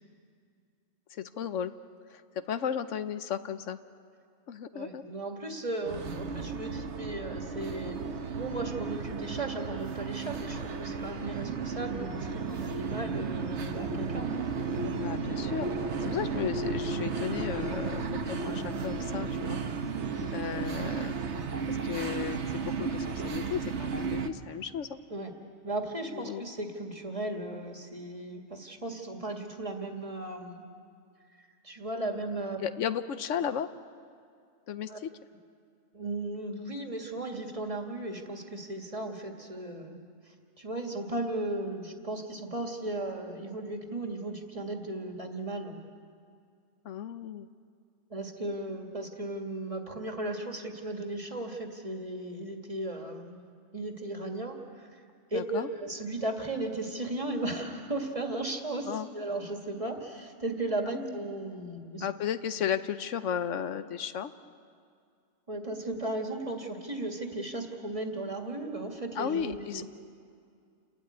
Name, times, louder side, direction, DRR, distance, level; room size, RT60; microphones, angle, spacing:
voice 1, 1.1-1.7 2.1-3.8 4.5-5.0 15.0-19.6 20.3-21.1 21.7-25.0 26.1-26.4 32.6-33.7 34.7-35.1 46.8-47.5 55.3-55.7 58.9-59.1 60.9-61.3 62.0-64.3 69.1-69.8, left 8 dB, 90° left, 11 dB, 1.1 m, -34 dB
voice 2, 4.7-14.4 25.1-25.3 25.6-30.6 31.6-32.6 34.9-35.0 35.9-40.0 40.3-45.8 48.1-53.4 53.7-55.0 55.3-62.1 65.5-69.8, right 2 dB, 30° right, 3 dB, 1.9 m, -36 dB
sound 1, 5.8-24.3, right 4 dB, 70° right, 1.3 m, -34 dB
29.5 x 13.0 x 9.5 m, 2.3 s
omnidirectional pair, 1.2 m